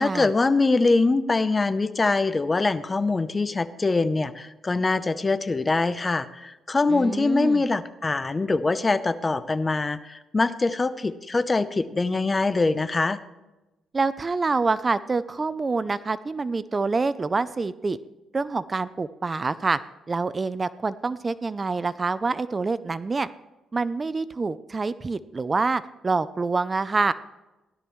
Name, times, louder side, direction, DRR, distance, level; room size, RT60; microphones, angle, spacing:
voice 1, 0.0-13.2, left 3 dB, 25° left, 14 dB, 0.6 m, -23 dB
voice 2, 6.9-7.6 13.9-18.0 18.3-19.8 20.1-23.3 23.7-27.1, right 4 dB, 30° right, 15 dB, 0.4 m, -26 dB
16.5 x 12.0 x 3.1 m, 1.0 s
cardioid pair, 90°, 0 cm